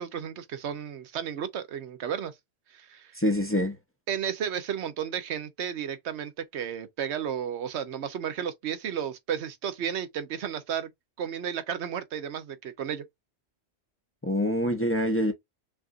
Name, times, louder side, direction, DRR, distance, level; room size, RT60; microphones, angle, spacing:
voice 1, 0.0-2.3 2.7-3.1 4.1-10.9 11.2-13.0, right 8 dB, 85° right, 1.0 m, -33 dB
voice 2, 3.2-3.8 14.2-15.3, equal, 15° left, 0.7 m, -25 dB
5.7 x 2.5 x 2.4 m
omnidirectional pair, 1.1 m